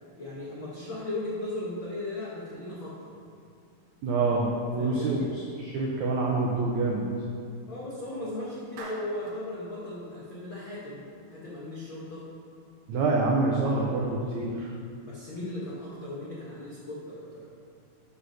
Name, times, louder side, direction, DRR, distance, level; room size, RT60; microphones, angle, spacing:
voice 1, 0.1-3.1 4.8-5.3 7.7-11.0 11.3-12.3 15.0-17.5, left 1 dB, 85° left, -7 dB, 1.1 m, -37 dB
voice 2, 4.0-7.1 12.9-14.7, right 3 dB, 90° right, -3 dB, 1.6 m, -26 dB
Clapping, 8.8-9.5, right 2 dB, 65° right, 2.3 m, -43 dB
9.6 x 5.6 x 6.4 m, 2.3 s
omnidirectional pair, 4.7 m